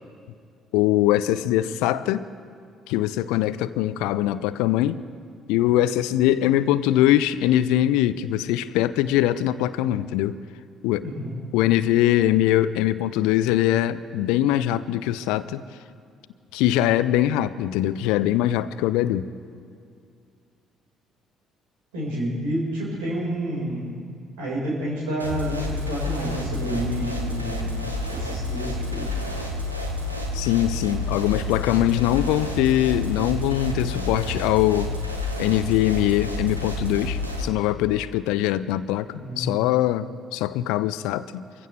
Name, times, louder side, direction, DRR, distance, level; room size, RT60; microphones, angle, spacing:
voice 1, 0.7-2.3 2.9-5.0 5.5-10.3 10.8-11.0 11.5-15.6 16.5-19.3 30.3-35.0 35.4-39.1 39.4-41.4, left 13 dB, 65° left, 16 dB, 0.4 m, -22 dB
voice 2, 11.0-11.4 21.9-27.8 28.1-29.2 39.2-39.6, right 1 dB, 70° right, -4 dB, 4.5 m, -29 dB
sound 1, 25.2-37.4, left 2 dB, 90° right, 1.0 m, -29 dB
24.5 x 15.5 x 3.3 m, 2.4 s
figure-of-eight pair, 45°, 0 cm